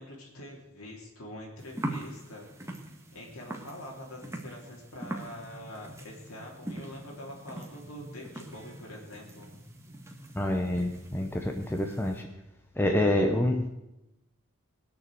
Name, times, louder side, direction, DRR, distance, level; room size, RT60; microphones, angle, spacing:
voice 1, 0.0-2.7 3.1-9.6, left 1 dB, 85° left, -2 dB, 3.4 m, -45 dB
sound 1, 1.6-12.2, right 1 dB, 15° right, 1.5 m, -42 dB
voice 2, 10.3-12.3 12.8-13.7, left 1 dB, 10° left, 3 dB, 0.7 m, -27 dB
20.0 x 6.9 x 7.7 m, 0.93 s
head